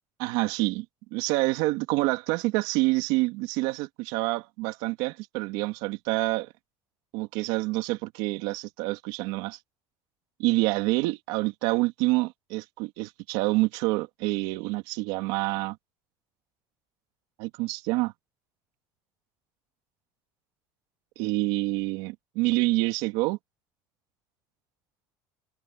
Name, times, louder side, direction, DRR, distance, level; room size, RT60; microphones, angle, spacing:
voice 1, 0.2-0.8 1.1-6.5 7.1-9.6 10.4-15.8 17.4-18.1 21.2-23.4, right 22 dB, 80° right, 2.8 m, -27 dB
open air
cardioid pair, 135°, 10 cm